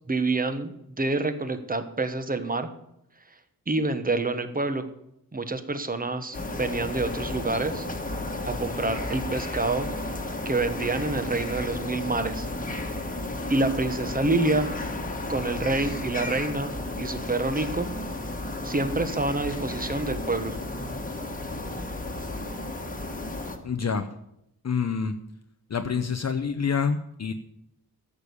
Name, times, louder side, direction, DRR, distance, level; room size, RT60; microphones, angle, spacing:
voice 1, 0.1-2.7 3.7-4.9 5.3-7.9 8.4-9.9 10.4-12.5 13.5-14.7 15.3-16.7 17.0-17.9 18.6-20.6, right 2 dB, 20° right, 10 dB, 1.1 m, -27 dB
sound 1, 6.3-23.6, left 2 dB, 20° left, 1.5 m, -33 dB
voice 2, 23.6-24.2 24.6-25.2 25.7-27.3, left 6 dB, 45° left, 7 dB, 0.7 m, -27 dB
13.5 x 6.9 x 8.4 m, 0.81 s
wide cardioid pair, 155°, 38 cm